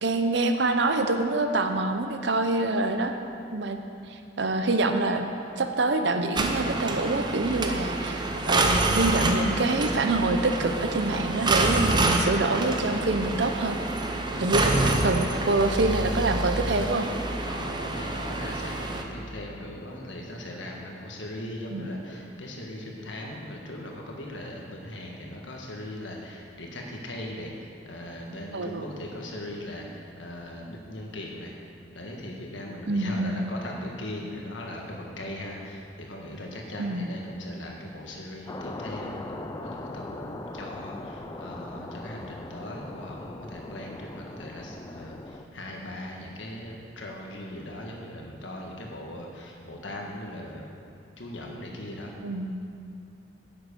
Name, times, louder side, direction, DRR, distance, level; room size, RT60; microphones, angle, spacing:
voice 1, 0.0-3.1 3.5-3.8 4.4-5.2 5.6-13.8 14.4-14.7 15.0-17.1 21.7-21.9 28.5-28.8 32.9-33.4 36.8-37.1 52.2-52.5, right 2 dB, 65° right, 6 dB, 0.7 m, -26 dB
sound 1, 6.3-19.0, right 2 dB, 25° right, 0.7 m, -27 dB
voice 2, 14.3-14.7 17.4-31.5 31.9-50.7 51.2-52.1, left 1 dB, 90° left, -1 dB, 1.6 m, -39 dB
sound 2, 38.5-45.4, left 2 dB, 20° left, 0.4 m, -40 dB
9.7 x 7.7 x 5.3 m, 2.5 s
head